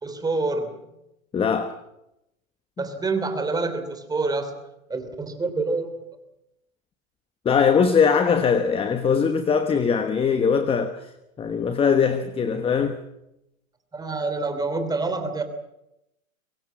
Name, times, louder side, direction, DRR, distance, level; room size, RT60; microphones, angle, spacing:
voice 1, 0.0-0.7 2.8-4.6 4.9-6.0 13.9-15.4, right 3 dB, 10° right, 3.3 m, -27 dB
voice 2, 1.3-1.7 2.8-2.9 7.4-11.1 11.4-13.0, left 6 dB, 15° left, 1.2 m, -21 dB
24.0 x 20.5 x 7.5 m
hypercardioid pair, 130°, 42 cm